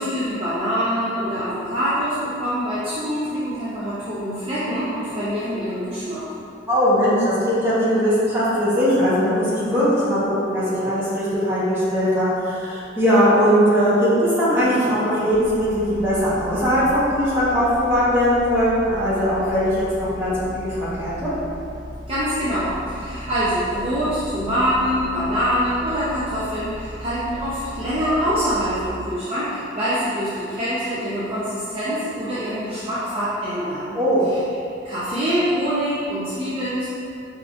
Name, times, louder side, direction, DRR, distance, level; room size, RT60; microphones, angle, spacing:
voice 1, 0.0-6.2 22.1-34.0 34.3-34.4 34.8-36.9, equal, 30° right, -11 dB, 0.6 m, -24 dB
voice 2, 6.7-21.3 33.9-34.2, equal, 15° right, -11 dB, 1.1 m, -20 dB
sound 1, 15.3-28.9, left 1 dB, 70° right, 1.3 m, -37 dB
4.7 x 3.5 x 2.5 m, 2.7 s
head